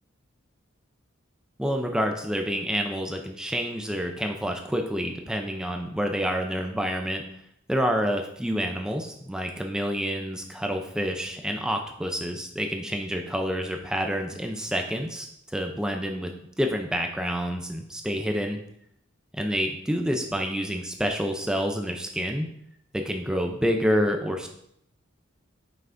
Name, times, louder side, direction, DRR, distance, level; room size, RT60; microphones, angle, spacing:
voice 1, 1.6-7.2 7.7-16.3 16.6-18.6 19.4-22.5 22.9-24.5, equal, 5° right, 3 dB, 0.4 m, -28 dB
9.1 x 5.7 x 2.5 m, 0.74 s
head